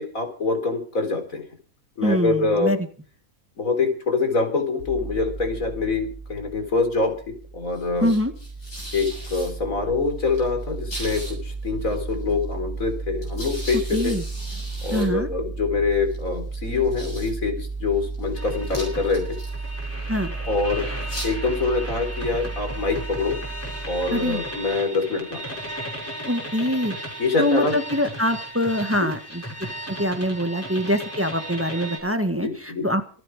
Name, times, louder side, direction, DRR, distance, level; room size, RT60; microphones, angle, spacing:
voice 1, 0.0-1.4 2.0-2.7 3.6-7.1 7.5-8.1 8.9-14.1 14.8-19.3 20.4-23.4 23.9-25.4 27.2-27.7 29.0-29.1 32.4-32.9, left 4 dB, 60° left, 5 dB, 4.4 m, -25 dB
voice 2, 2.0-2.8 8.0-8.3 13.9-14.2 14.9-15.3 20.1-20.3 24.1-24.4 26.2-27.0 27.4-29.4 29.9-33.2, equal, 10° right, 7 dB, 1.4 m, -24 dB
sound 1, 4.8-24.7, right 3 dB, 85° left, 7.9 m, -33 dB
sound 2, 18.3-32.0, right 1 dB, 10° left, 6.2 m, -36 dB
26.0 x 9.9 x 4.9 m, 0.42 s
omnidirectional pair, 1.6 m